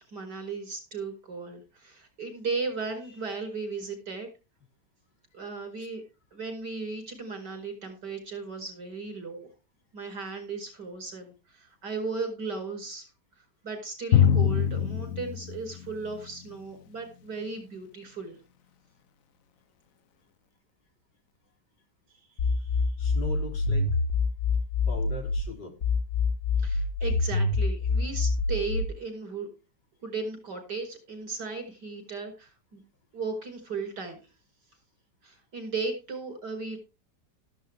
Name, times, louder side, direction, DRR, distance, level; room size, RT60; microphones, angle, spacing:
voice 1, 0.0-4.3 5.3-6.0 6.3-9.5 9.9-13.1 13.6-18.4 22.4-22.7 26.6-29.5 30.0-32.8 33.1-34.2 35.2-36.8, right 4 dB, 70° right, 5 dB, 5.5 m, -36 dB
Drum, 14.1-16.5, left 9 dB, 60° left, 1.0 m, -24 dB
sound 1, 22.4-25.4 25.8-28.8, left 3 dB, 45° left, 1.7 m, -26 dB
voice 2, 23.0-24.0 24.9-25.8, left 3 dB, 80° left, 3 dB, 4.3 m, -39 dB
14.0 x 11.5 x 3.4 m, 0.30 s
omnidirectional pair, 1.9 m